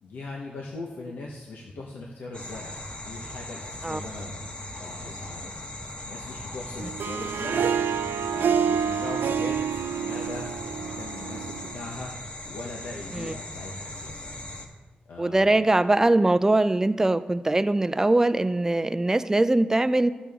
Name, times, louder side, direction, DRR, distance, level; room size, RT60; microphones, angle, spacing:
voice 1, 0.0-4.5 4.7-5.7 6.1-7.8 8.3-9.6 9.9-12.1 12.4-14.3 15.1-15.7, left 3 dB, 90° left, -2 dB, 0.9 m, -40 dB
sound 1, 2.3-14.7, left 1 dB, 40° left, 1.3 m, -39 dB
Harp, 6.8-12.0, right 7 dB, 90° right, 0.3 m, -28 dB
voice 2, 15.2-20.1, right 2 dB, 15° right, 12 dB, 0.4 m, -22 dB
12.5 x 7.2 x 3.5 m, 1.3 s
cardioid pair, 90°, 3 cm